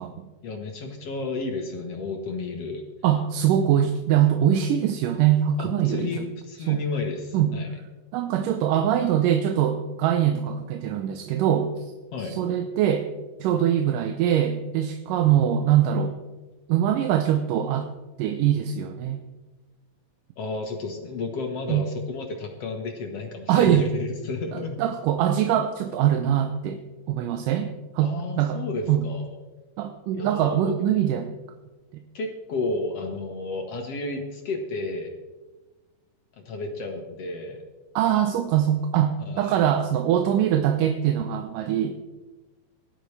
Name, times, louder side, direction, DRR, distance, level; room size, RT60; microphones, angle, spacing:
voice 1, 0.4-2.8 5.6-7.7 12.1-12.4 20.4-24.8 28.0-29.3 30.2-30.7 32.1-35.1 36.4-37.6 39.2-39.6, left 3 dB, 60° left, 3 dB, 1.8 m, -32 dB
voice 2, 3.0-6.3 6.7-6.8 7.3-7.5 8.1-11.7 12.2-13.1 13.4-16.1 16.7-17.9 18.2-19.2 21.7-21.8 23.5-23.9 24.5-26.8 27.1-28.6 28.9-29.1 29.8-31.3 31.9-32.0 38.0-42.0, right 10 dB, 80° right, 6 dB, 2.3 m, -23 dB
17.0 x 12.0 x 3.3 m, 1.2 s
omnidirectional pair, 4.0 m